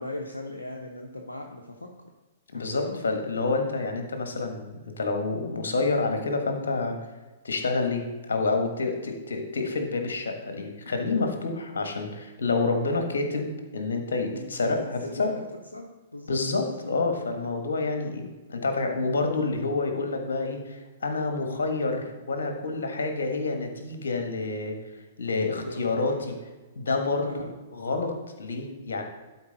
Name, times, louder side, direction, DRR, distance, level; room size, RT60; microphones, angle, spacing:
voice 1, 0.0-1.9 2.5-3.0 14.2-15.5 15.7-16.4 25.7-26.4 27.2-27.5, left 1 dB, 90° left, 1 dB, 0.7 m, -38 dB
voice 2, 2.5-7.0 7.4-15.4 16.3-24.8 25.2-26.1 26.7-27.5 27.7-29.0, left 3 dB, 70° left, 5 dB, 1.4 m, -28 dB
11.5 x 4.6 x 4.0 m, 1.2 s
figure-of-eight pair, 110°, 0 cm